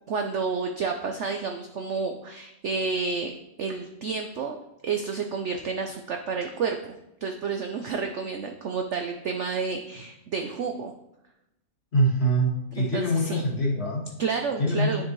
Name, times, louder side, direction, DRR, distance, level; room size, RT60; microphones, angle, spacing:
voice 1, 0.1-3.3 3.6-4.6 4.8-10.9 12.8-13.4 14.2-15.0, right 5 dB, 60° right, 4 dB, 0.7 m, -30 dB
voice 2, 11.9-14.0 14.6-15.0, right 1 dB, 35° left, -4 dB, 2.3 m, -24 dB
9.9 x 6.7 x 3.2 m, 0.89 s
omnidirectional pair, 1.8 m